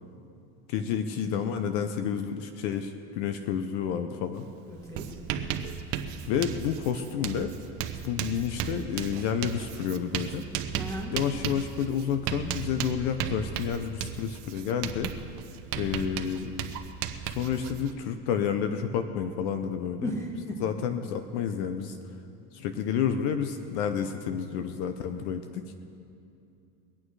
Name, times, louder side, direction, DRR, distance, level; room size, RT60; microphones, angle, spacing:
voice 1, 0.7-4.5 6.3-7.5 8.0-10.4 11.1-15.1 15.8-16.6 17.2-20.1 20.6-22.0 22.5-25.6, left 8 dB, 65° left, 8 dB, 0.9 m, -30 dB
Writing, 4.4-4.5 4.8-17.9, right 9 dB, 50° right, 0.9 m, -35 dB
voice 2, 4.7-5.2 10.7-11.2 20.0-20.6 21.4-21.5, equal, 10° left, 0 dB, 1.9 m, -35 dB
23.0 x 8.9 x 4.8 m, 2.6 s
cardioid pair, 165°, 37 cm